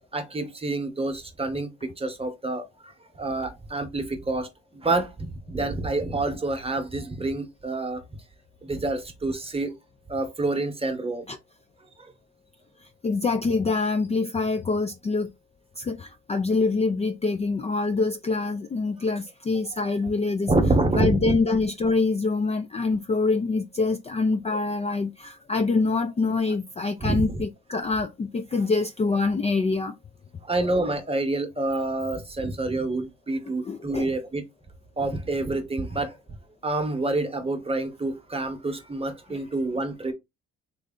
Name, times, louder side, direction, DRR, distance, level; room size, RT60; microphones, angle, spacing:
voice 1, 0.1-2.6 3.2-8.0 8.6-9.7 10.1-11.2 19.7-19.9 20.5-21.4 27.0-27.4 30.5-34.4 35.0-36.1 36.6-40.1, right 2 dB, 20° right, 1.0 m, -27 dB
voice 2, 13.0-15.3 15.8-20.5 21.0-29.9 33.6-34.1 39.3-39.4, left 3 dB, 20° left, 0.4 m, -25 dB
3.2 x 2.6 x 3.7 m
cardioid pair, 90°, 30 cm